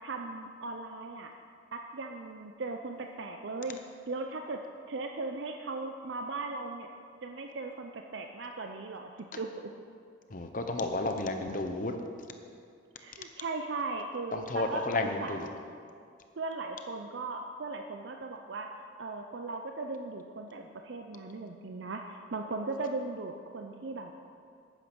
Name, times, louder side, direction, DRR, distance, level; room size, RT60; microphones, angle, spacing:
voice 1, 0.0-1.3 1.7-3.8 4.1-4.6 4.9-6.9 7.2-9.7 13.0-14.8 15.2-15.4 16.4-18.7 19.0-24.1, right 3 dB, 70° right, 4 dB, 0.6 m, -38 dB
voice 2, 10.3-12.0 14.3-15.5, left 2 dB, 45° left, 6 dB, 0.9 m, -32 dB
11.0 x 9.1 x 6.1 m, 2.3 s
head